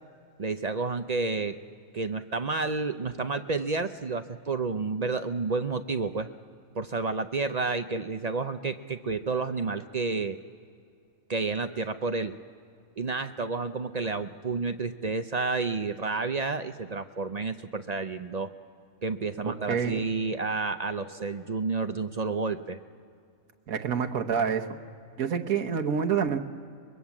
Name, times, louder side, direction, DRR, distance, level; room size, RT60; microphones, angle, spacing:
voice 1, 0.4-1.6 1.9-6.3 6.7-10.4 11.3-12.4 13.0-18.5 19.0-22.8, right 4 dB, 45° right, 9 dB, 0.5 m, -30 dB
voice 2, 19.7-20.0 23.7-24.7 25.2-26.4, right 7 dB, 85° right, 5 dB, 1.6 m, -27 dB
24.0 x 21.5 x 7.2 m, 2.4 s
omnidirectional pair, 1.4 m